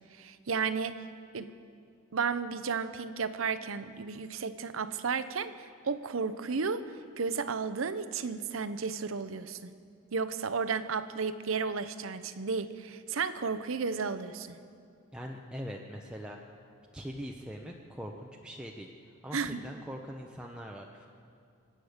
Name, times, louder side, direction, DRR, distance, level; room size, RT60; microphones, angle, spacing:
voice 1, 0.2-1.0 1.3-1.5 2.1-5.5 5.8-6.9 7.2-9.7 10.1-14.6 19.3-19.6, right 5 dB, 80° right, 12 dB, 0.7 m, -33 dB
voice 2, 15.1-16.4 16.9-18.9 19.2-21.1, equal, 5° right, -1 dB, 0.7 m, -42 dB
25.0 x 8.8 x 6.5 m, 2.3 s
head